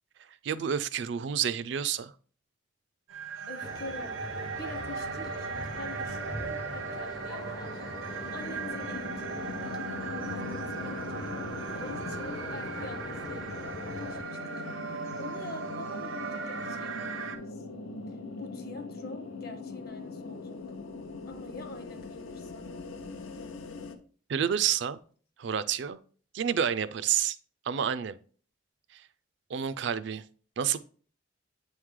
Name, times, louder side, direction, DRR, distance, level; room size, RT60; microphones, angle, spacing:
voice 1, 0.4-2.1 24.3-25.0 25.4-26.0 26.3-27.4 27.7-28.2 28.9-29.0 29.5-30.2 30.6-30.8, right 8 dB, 60° right, 0.4 m, -29 dB
sound 1, 3.1-17.4, right 4 dB, 80° right, 0.7 m, -38 dB
voice 2, 3.5-9.4 10.3-17.6 18.4-20.6 21.3-22.7, left 2 dB, 50° left, 0.9 m, -46 dB
sound 2, 3.6-14.2, left 1 dB, 20° left, 0.4 m, -43 dB
sound 3, 6.2-24.0, left 3 dB, 85° left, 0.7 m, -41 dB
8.2 x 3.2 x 3.6 m
head